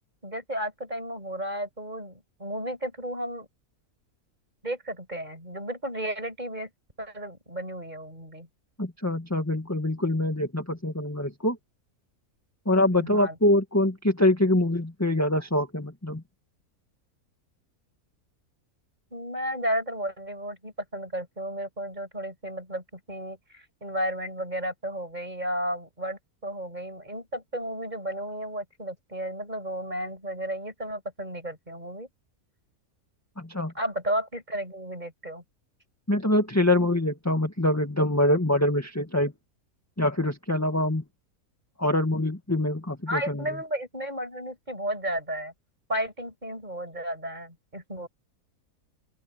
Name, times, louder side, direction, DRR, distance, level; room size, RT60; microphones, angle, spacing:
voice 1, 0.2-3.5 4.6-6.7 7.0-8.5 12.9-13.4 19.1-32.1 33.7-35.4 43.1-45.5 45.9-48.1, equal, 30° right, 7.6 m, -33 dB
voice 2, 8.8-11.6 12.7-16.2 33.4-33.7 36.1-39.3 40.0-41.0 41.8-43.4, left 1 dB, 10° left, 1.9 m, -24 dB
open air
omnidirectional pair, 1.6 m